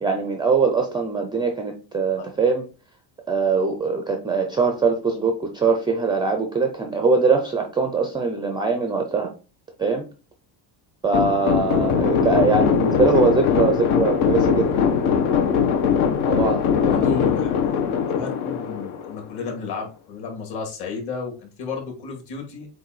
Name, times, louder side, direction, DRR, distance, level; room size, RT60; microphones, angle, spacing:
voice 1, 0.0-2.7 3.3-9.3 9.8-10.0 11.0-15.1 16.3-17.1, right 4 dB, 10° right, 0.3 m, -22 dB
sound 1, 11.1-19.4, left 7 dB, 75° left, 1.2 m, -21 dB
voice 2, 16.8-22.7, left 4 dB, 50° left, 2.6 m, -33 dB
7.8 x 2.6 x 4.6 m
cardioid pair, 165°, 49 cm